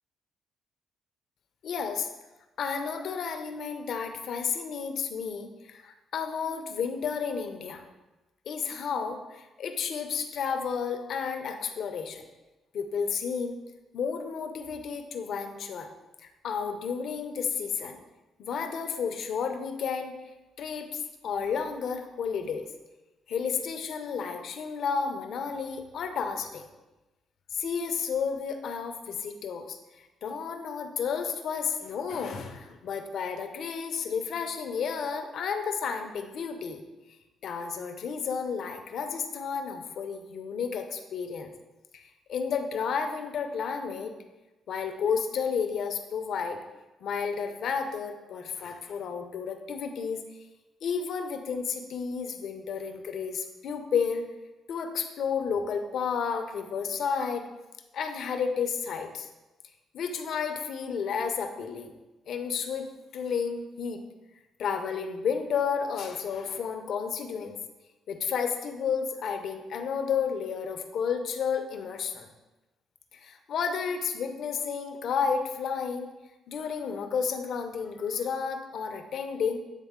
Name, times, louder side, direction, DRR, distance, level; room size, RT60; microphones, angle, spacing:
voice 1, 1.6-2.1 2.6-7.9 8.5-12.2 12.7-13.6 13.9-15.9 16.2-18.0 18.4-20.1 20.6-22.7 23.3-26.6 27.5-29.8 30.2-36.8 37.4-41.5 41.9-44.1 44.7-46.6 47.0-50.2 50.8-54.2 54.7-57.5 57.9-59.3 59.9-61.9 62.3-62.9 63.1-64.0 64.6-67.5 68.1-72.3 73.1-76.1 76.5-79.6, left 6 dB, 70° left, 6 dB, 0.7 m, -32 dB
8.2 x 3.6 x 3.7 m, 1.1 s
cardioid pair, 90°, 0 cm